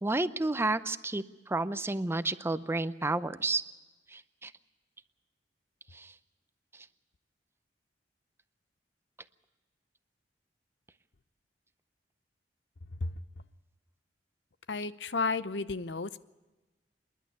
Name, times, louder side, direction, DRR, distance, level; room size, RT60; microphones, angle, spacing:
voice 1, 0.0-3.6 4.1-4.5 5.9-6.1, right 2 dB, 15° right, 13 dB, 0.6 m, -31 dB
voice 2, 14.7-16.2, left 4 dB, 80° left, 14 dB, 0.8 m, -33 dB
26.5 x 11.0 x 9.5 m, 1.2 s
head